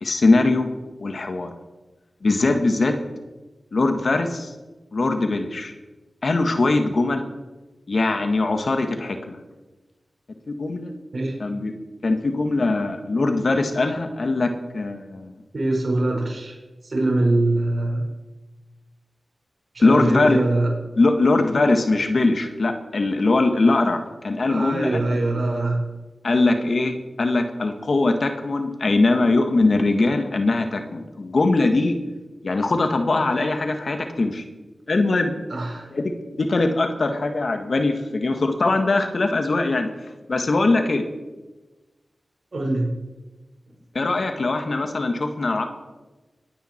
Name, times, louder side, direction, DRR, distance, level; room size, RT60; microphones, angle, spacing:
voice 1, 0.0-0.7 1.0-1.5 2.2-3.0 3.7-4.5 4.9-5.7 6.2-7.2 7.9-9.4 10.6-10.9 11.4-11.7 12.0-15.4 19.8-20.4 21.0-24.0 24.2-25.0 26.2-32.0 32.4-34.4 34.9-35.3 35.9-36.1 36.4-39.9 40.3-41.0 44.0-45.6, left 2 dB, 65° left, 6 dB, 1.8 m, -21 dB
voice 2, 15.5-16.5 16.8-18.0 19.7-20.7 24.4-25.8 35.5-35.9 42.5-42.9, right 2 dB, 60° right, -2 dB, 5.0 m, -23 dB
21.5 x 9.5 x 4.5 m, 1.2 s
cardioid pair, 45°, 0 cm